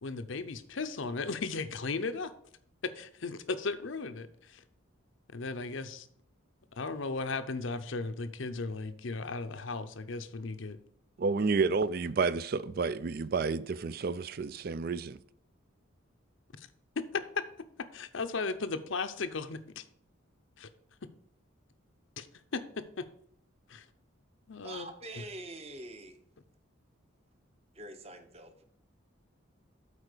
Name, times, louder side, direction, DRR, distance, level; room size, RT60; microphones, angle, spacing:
voice 1, 0.0-2.3 2.8-4.6 5.3-6.1 6.7-10.8 16.6-16.7 17.0-17.4 17.8-19.8 20.6-20.7 22.2-22.3 22.5-23.1 23.7-23.9 24.5-24.9 25.2-25.3, left 4 dB, 65° left, 0.7 m, -36 dB
voice 2, 11.2-15.2, right 4 dB, 45° right, 0.4 m, -30 dB
voice 3, 24.6-26.2 27.7-28.6, right 2 dB, 30° right, 0.9 m, -45 dB
8.3 x 4.4 x 6.6 m
head